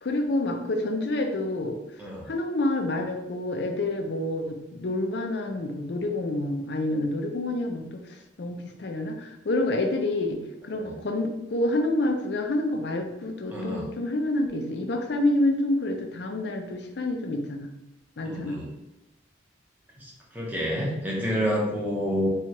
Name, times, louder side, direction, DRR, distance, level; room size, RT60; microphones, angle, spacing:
voice 1, 0.0-1.8 2.3-17.7 18.2-18.6, left 1 dB, 55° left, 4 dB, 0.5 m, -28 dB
voice 2, 2.0-2.3 10.8-10.9 13.5-13.9 18.2-18.7 20.0-22.3, equal, 10° right, -4 dB, 0.7 m, -29 dB
4.3 x 2.4 x 2.9 m, 0.92 s
head